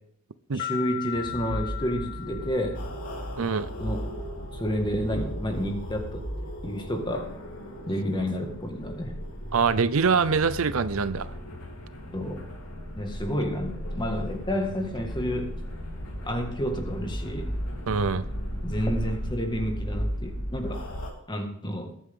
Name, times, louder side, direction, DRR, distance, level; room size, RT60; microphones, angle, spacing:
voice 1, 0.5-2.8 3.8-4.1 4.5-7.3 7.9-9.2 12.1-12.4 12.9-15.5 16.2-17.6 18.6-20.8 21.3-21.9, equal, 20° left, 4 dB, 1.9 m, -30 dB
sound 1, 0.6-3.2, left 13 dB, 45° left, 1.5 m, -37 dB
sound 2, 1.1-21.1, equal, 75° left, 3.4 m, -36 dB
voice 2, 3.4-3.7 9.5-11.3 17.9-18.3, right 5 dB, 70° right, 15 dB, 0.6 m, -24 dB
21.5 x 9.4 x 3.7 m, 0.71 s
head